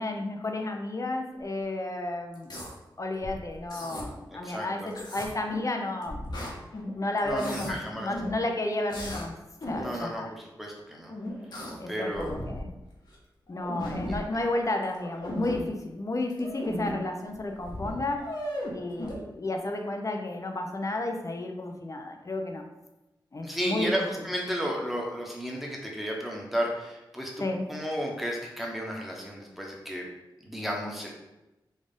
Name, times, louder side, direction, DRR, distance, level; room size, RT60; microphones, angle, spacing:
voice 1, 0.0-2.5 3.0-6.2 6.9-9.3 9.7-10.3 11.8-12.7 13.5-18.2 18.7-22.7 23.3-23.9 27.4-27.6, left 2 dB, 40° left, 3 dB, 0.6 m, -32 dB
sound 1, 2.3-2.7 3.2-4.0 4.9-5.7 6.0-6.9 7.2-7.7 8.1-8.4 8.9-9.3 9.6-9.9 11.1-11.8 12.1-12.8 13.1-13.2 13.5-14.2 14.8-15.6 16.3-16.9 17.3-17.4 17.6-19.1, equal, 55° left, 1.2 m, -36 dB
voice 2, 4.3-4.9 7.2-8.1 9.8-10.2 10.6-11.1 11.9-12.3 13.9-14.2 23.4-27.3 27.7-30.0 30.4-31.1, equal, ahead, -1 dB, 1.1 m, -33 dB
4.1 x 2.4 x 3.6 m, 0.99 s
cardioid pair, 50°, 9 cm